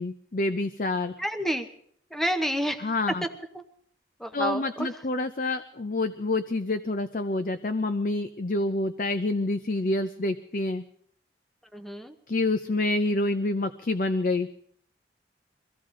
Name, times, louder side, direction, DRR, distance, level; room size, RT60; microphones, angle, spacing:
voice 1, 0.0-1.1 2.8-3.2 4.3-10.8 12.3-14.5, left 2 dB, 45° left, 9 dB, 0.6 m, -27 dB
voice 2, 1.2-1.7 2.1-2.9 3.5-3.6 4.2-4.9 11.7-12.1, equal, ahead, 7 dB, 0.8 m, -29 dB
23.0 x 15.5 x 3.8 m, 0.66 s
head